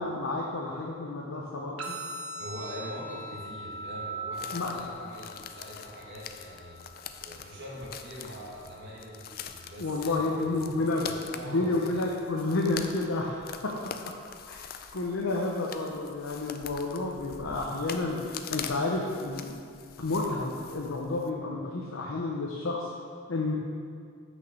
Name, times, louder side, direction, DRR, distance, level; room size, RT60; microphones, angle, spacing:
voice 1, 0.0-2.0 4.5-4.8 9.8-11.1 11.4-13.9 14.5-14.7 14.9-19.5 20.0-22.9 23.3-23.6, left 2 dB, 60° left, -2 dB, 0.8 m, -30 dB
sound 1, 1.8-9.8, right 1 dB, 80° right, 1.1 m, -42 dB
voice 2, 2.4-6.8 7.2-10.6 11.0-12.1, equal, 55° right, -4 dB, 2.0 m, -43 dB
sound 2, 4.3-21.3, left 7 dB, 45° left, 0.4 m, -44 dB
6.1 x 6.1 x 6.8 m, 2.3 s
head